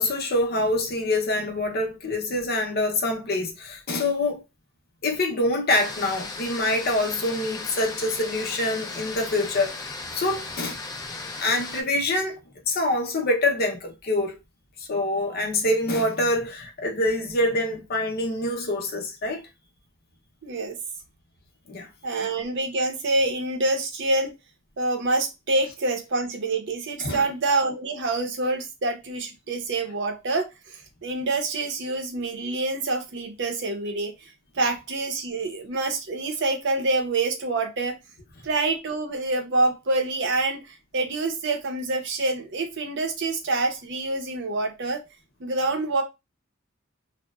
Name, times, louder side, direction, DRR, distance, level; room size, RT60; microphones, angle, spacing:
voice 1, 0.0-4.4 5.0-10.8 11.4-12.4 12.7-14.4 14.8-19.4 21.7-21.9 27.0-27.3, left 2 dB, 50° left, 0.6 m, -25 dB
sound 1, 5.7-11.8, left 3 dB, 20° left, 0.3 m, -36 dB
voice 2, 20.4-20.8 22.0-24.3 24.8-34.1 34.5-38.0 38.4-45.0 45.4-46.0, right 2 dB, 60° right, 0.6 m, -26 dB
2.8 x 2.1 x 2.3 m
head